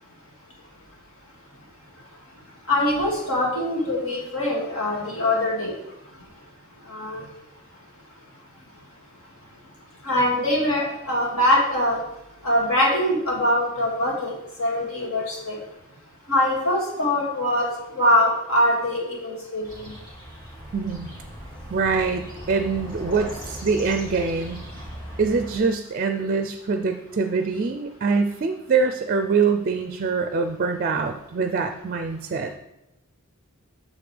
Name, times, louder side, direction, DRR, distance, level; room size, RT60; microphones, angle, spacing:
voice 1, 2.7-5.7 6.9-7.2 10.0-12.0 12.4-14.3 14.6-15.6 16.3-17.7 17.9-19.8, left 1 dB, 65° left, -3 dB, 2.3 m, -23 dB
sound 1, 19.6-25.6, equal, 20° left, 2.1 m, -38 dB
voice 2, 20.7-21.1 21.7-24.6 25.2-32.5, right 4 dB, 40° right, 7 dB, 0.4 m, -24 dB
8.6 x 6.4 x 3.3 m, 0.89 s
head